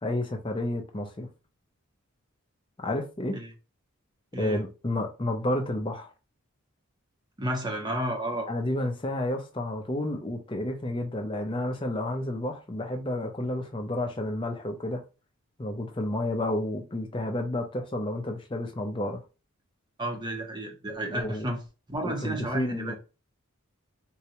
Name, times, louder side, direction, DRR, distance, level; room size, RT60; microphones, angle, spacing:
voice 1, 0.0-1.3 2.8-3.4 4.3-6.1 8.5-15.0 15.6-19.2 21.1-21.5 22.0-23.0, left 1 dB, 20° left, 0.5 m, -31 dB
voice 2, 7.4-8.5 20.0-21.6 21.9-23.0, right 1 dB, 20° right, 0.6 m, -32 dB
3.8 x 2.2 x 2.9 m
head